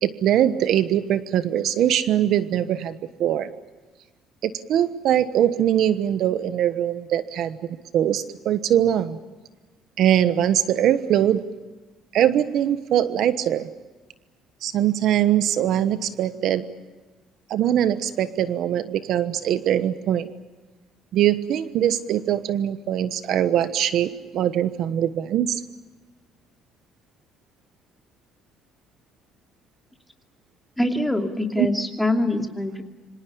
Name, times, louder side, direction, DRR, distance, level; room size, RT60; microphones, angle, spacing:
voice 1, 0.0-3.5 4.4-7.6 7.9-9.2 10.0-11.4 12.1-13.7 14.6-16.6 17.5-20.3 21.1-25.6 31.6-31.7, right 11 dB, 65° right, 12 dB, 1.2 m, -22 dB
voice 2, 30.8-32.8, left 1 dB, 5° left, 4 dB, 2.7 m, -24 dB
26.5 x 25.5 x 6.9 m, 1.3 s
cardioid pair, 130°, 0 cm